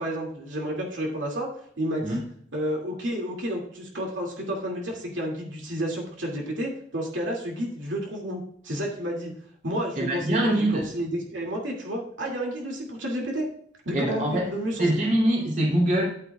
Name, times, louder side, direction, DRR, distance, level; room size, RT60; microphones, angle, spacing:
voice 1, 0.0-1.5 1.8-2.2 2.5-9.3 9.6-13.5 13.8-14.9, equal, 80° right, -1 dB, 2.4 m, -31 dB
voice 2, 10.0-10.8 13.9-14.4 14.8-16.0, right 1 dB, 45° right, -2 dB, 2.9 m, -23 dB
13.5 x 8.7 x 2.4 m, 0.64 s
head